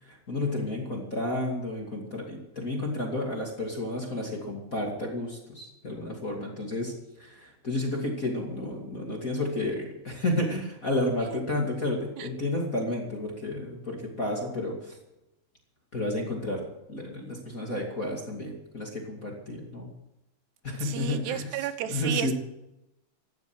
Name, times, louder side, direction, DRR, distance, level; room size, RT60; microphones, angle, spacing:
voice 1, 0.0-15.0 15.9-16.6 16.9-19.9 20.6-22.3, left 1 dB, 25° left, -1 dB, 2.1 m, -31 dB
voice 2, 20.8-22.3, right 11 dB, 85° right, 11 dB, 3.2 m, -32 dB
16.0 x 12.0 x 6.2 m, 0.92 s
omnidirectional pair, 4.7 m